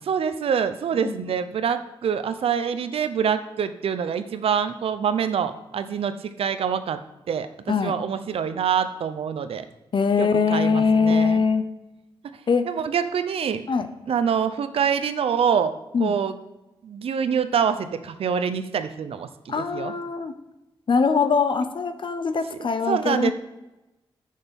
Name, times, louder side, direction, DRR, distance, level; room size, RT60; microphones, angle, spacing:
voice 1, 0.0-7.0 7.3-9.7 10.2-11.4 12.2-12.4 12.7-13.6 14.1-15.7 16.0-16.4 16.8-19.9 22.9-23.3, right 7 dB, 85° right, 11 dB, 0.7 m, -25 dB
voice 2, 9.9-11.6 12.5-12.7 13.7-13.9 15.9-16.2 19.5-20.3 20.9-23.3, left 5 dB, 60° left, 10 dB, 0.8 m, -22 dB
9.8 x 6.6 x 5.3 m, 0.99 s
cardioid pair, 75°, 10 cm